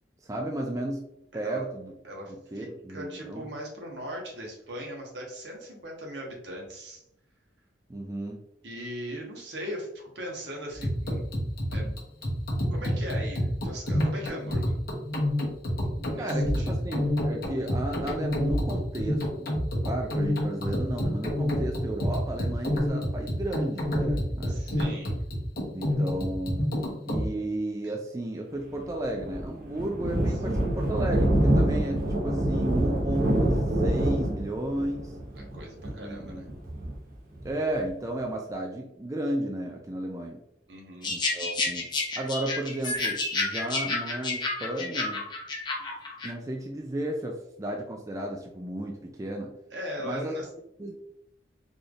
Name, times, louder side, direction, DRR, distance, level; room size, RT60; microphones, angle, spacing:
voice 1, 0.2-1.0 1.3-1.9 2.5-3.5 7.9-8.4 16.1-19.5 19.8-24.6 25.7-26.7 27.0-35.1 35.9-36.5 37.4-40.4 41.1-41.9 42.2-45.3 46.2-49.5 50.0-50.3 50.8-51.0, right 1 dB, 20° right, 1 dB, 0.4 m, -33 dB
voice 2, 1.3-1.6 2.0-7.0 8.6-11.2 11.7-11.9 12.7-14.8 16.1-16.8 24.5-25.2 27.8-28.0 35.3-36.5 40.7-41.1 49.7-50.5, equal, 70° right, 0 dB, 1.1 m, -39 dB
sound 1, 10.7-27.3, equal, 55° left, 1.0 m, -28 dB
Thunder, 28.7-37.9, right 1 dB, 50° right, 0.9 m, -26 dB
sound 2, 41.0-46.3, left 3 dB, 25° left, 0.7 m, -30 dB
4.1 x 3.3 x 2.4 m, 0.76 s
head